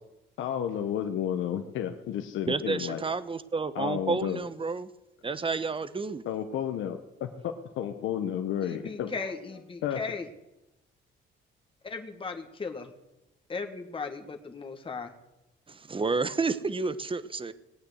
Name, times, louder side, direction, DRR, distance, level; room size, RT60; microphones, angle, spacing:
voice 1, 0.4-3.0 3.7-4.4 6.3-9.1 9.8-10.0, left 9 dB, 80° left, 6 dB, 1.1 m, -32 dB
voice 2, 2.5-4.9 5.2-6.2 15.7-17.5, right 4 dB, 25° right, 14 dB, 1.0 m, -30 dB
voice 3, 8.6-10.3 11.8-12.9 13.5-15.1, left 4 dB, 25° left, 3 dB, 1.6 m, -37 dB
19.0 x 8.9 x 7.9 m, 0.95 s
cardioid pair, 90°, 20 cm